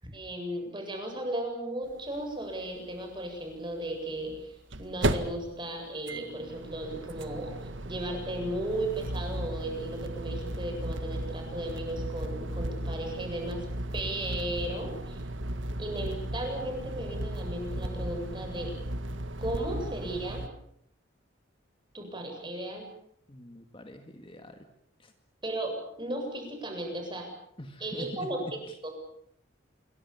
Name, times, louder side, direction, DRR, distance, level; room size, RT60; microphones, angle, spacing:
voice 1, 0.0-13.7 13.9-15.2 15.8-18.7 19.4-20.4 21.9-22.9 25.4-27.3 27.8-28.9, right 1 dB, 25° right, 3 dB, 7.9 m, -35 dB
sound 1, 1.9-2.0 2.2-2.3 4.2-20.5, right 1 dB, 70° right, 1.9 m, -35 dB
voice 2, 23.3-24.7 25.0-25.1 27.6-28.9, equal, 25° left, 6 dB, 2.0 m, -44 dB
28.0 x 23.5 x 7.4 m, 0.72 s
head